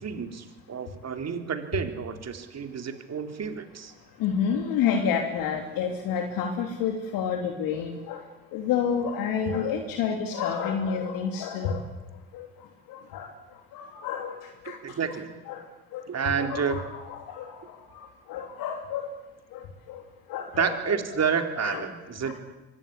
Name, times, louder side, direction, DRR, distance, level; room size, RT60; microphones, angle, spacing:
voice 1, 0.0-3.9 14.7-15.3 16.1-16.8 20.6-22.3, right 6 dB, 45° right, 6 dB, 3.7 m, -30 dB
voice 2, 4.2-8.2 8.5-11.8 12.3-12.5 12.9-13.3 13.7-14.8 15.1-15.2 15.5-15.6 15.9-19.1 19.5-20.0 20.3-21.2 21.6-21.8 22.2-22.3, left 7 dB, 70° left, 4 dB, 3.1 m, -30 dB
24.0 x 19.0 x 9.9 m, 1.1 s
hypercardioid pair, 55°, 35 cm